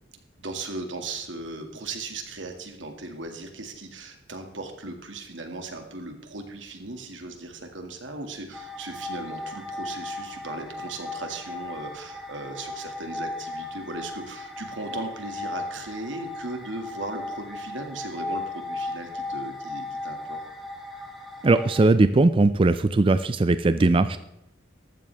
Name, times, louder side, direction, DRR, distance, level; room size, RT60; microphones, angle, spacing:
voice 1, 0.4-20.4, right 2 dB, 85° right, 5 dB, 2.1 m, -37 dB
sound 1, 8.5-21.9, left 2 dB, ahead, 2.2 m, -36 dB
voice 2, 21.4-24.2, right 2 dB, 30° right, 12 dB, 0.4 m, -19 dB
14.5 x 12.5 x 3.4 m, 0.85 s
head